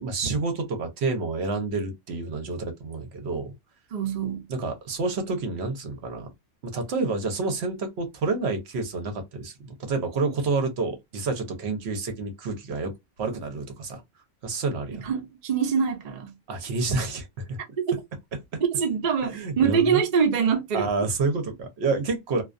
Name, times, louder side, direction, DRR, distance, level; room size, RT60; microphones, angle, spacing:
voice 1, 0.0-3.5 4.5-6.3 6.7-12.9 13.2-14.0 14.4-15.0 16.5-17.6 18.5-18.6 19.2-20.0 20.7-22.4, right 3 dB, 65° right, 0.9 m, -29 dB
voice 2, 3.9-4.4 11.7-11.8 14.9-16.3 18.6-20.9, right 7 dB, 50° right, 0.6 m, -24 dB
2.3 x 2.3 x 2.4 m
omnidirectional pair, 1.2 m